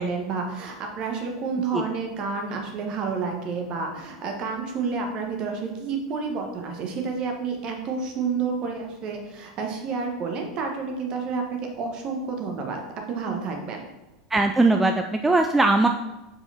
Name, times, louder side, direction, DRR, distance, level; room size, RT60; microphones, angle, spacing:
voice 1, 0.0-12.8 13.1-13.9, right 5 dB, 40° right, 2 dB, 1.3 m, -30 dB
voice 2, 14.3-15.9, right 2 dB, 10° right, 4 dB, 0.4 m, -20 dB
5.1 x 4.8 x 4.3 m, 1.0 s
hypercardioid pair, 90°, 2 cm